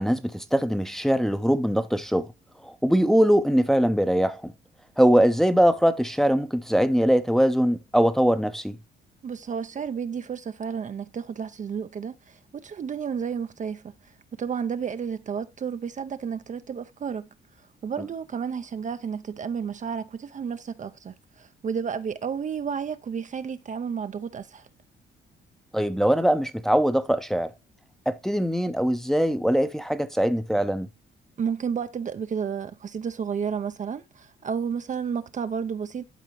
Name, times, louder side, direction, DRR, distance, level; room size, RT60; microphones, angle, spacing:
voice 1, 0.0-2.3 2.6-4.5 5.0-8.8 25.7-27.5 28.1-30.9, equal, ahead, 0.6 m, -22 dB
voice 2, 9.2-13.9 14.4-17.3 17.8-24.7 31.4-36.2, right 7 dB, 40° right, 0.5 m, -31 dB
12.0 x 4.0 x 3.0 m
cardioid pair, 90°, 20 cm